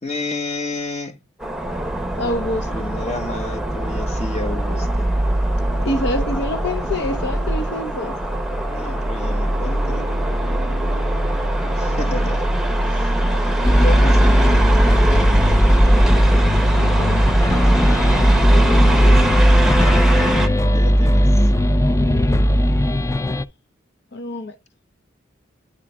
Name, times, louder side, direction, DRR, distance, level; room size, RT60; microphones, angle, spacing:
voice 1, 0.0-1.2 2.7-5.1 8.6-10.0 11.8-12.5 13.3-15.3 18.0-19.6 20.7-21.5, left 2 dB, 35° left, 1.6 m, -31 dB
sound 1, 1.4-20.5, right 1 dB, ahead, 0.9 m, -21 dB
voice 2, 2.2-2.7 5.8-8.2 10.4-11.0 12.9-13.1 16.7-17.2 24.1-24.6, left 1 dB, 60° left, 0.7 m, -27 dB
sound 2, 13.6-23.4, equal, 15° left, 0.4 m, -16 dB
9.9 x 3.7 x 3.5 m
head